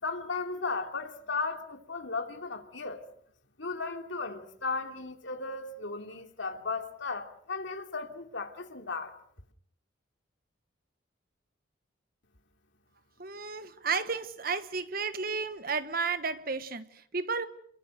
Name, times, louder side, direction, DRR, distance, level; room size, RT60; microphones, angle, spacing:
voice 1, 0.0-3.0 3.6-9.1, left 4 dB, 70° left, 2.9 m, -35 dB
voice 2, 13.2-17.5, right 4 dB, 45° right, 1.3 m, -32 dB
27.5 x 22.5 x 6.5 m
head